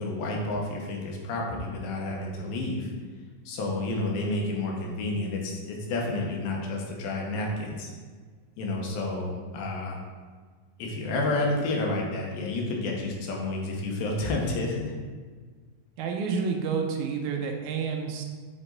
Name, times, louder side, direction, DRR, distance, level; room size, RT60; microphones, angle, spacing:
voice 1, 0.0-2.9 3.5-7.9 8.6-10.0 10.8-14.9, left 2 dB, 90° left, -1 dB, 2.8 m, -30 dB
voice 2, 16.0-18.2, right 5 dB, 85° right, 3 dB, 1.7 m, -29 dB
7.8 x 4.0 x 3.8 m, 1.5 s
omnidirectional pair, 4.0 m